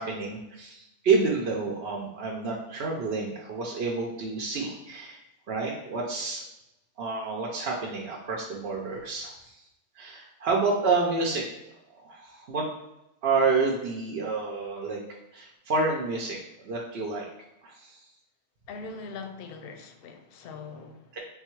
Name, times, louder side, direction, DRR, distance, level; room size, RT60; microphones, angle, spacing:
voice 1, 0.0-5.2 5.5-6.4 7.0-9.6 10.0-11.4 12.0-12.6 13.2-15.0 15.3-17.2 17.6-18.1 21.1-21.2, right 4 dB, 65° right, 0.9 m, -29 dB
voice 2, 18.7-21.2, left 4 dB, 65° left, 0.7 m, -41 dB
3.5 x 2.3 x 4.5 m
omnidirectional pair, 1.2 m